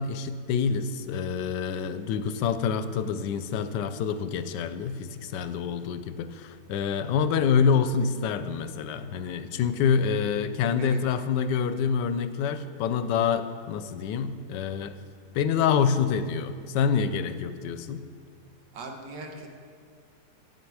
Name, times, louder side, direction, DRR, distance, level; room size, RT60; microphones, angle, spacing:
voice 1, 0.0-14.9 15.3-18.0, left 6 dB, 90° left, 11 dB, 1.2 m, -27 dB
voice 2, 18.7-19.5, right 3 dB, 90° right, 2 dB, 1.7 m, -39 dB
12.0 x 7.3 x 4.7 m, 2.1 s
omnidirectional pair, 1.8 m